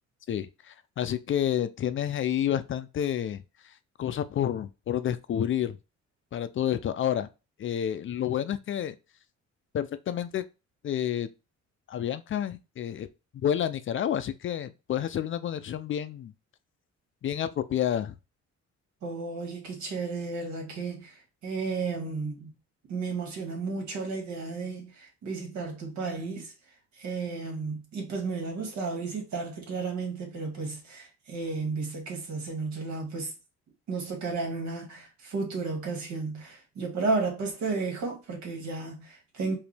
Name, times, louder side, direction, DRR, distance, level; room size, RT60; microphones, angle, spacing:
voice 1, 0.3-3.4 4.0-5.8 6.3-7.3 7.6-8.9 9.7-10.4 10.8-11.3 11.9-13.1 13.4-16.3 17.2-18.1, left 10 dB, 45° left, 0.4 m, -29 dB
voice 2, 19.0-22.5 22.9-26.5 27.0-33.3 33.9-39.6, right 4 dB, 75° right, 1.9 m, -33 dB
5.0 x 2.7 x 3.3 m
cardioid pair, 115°, 29 cm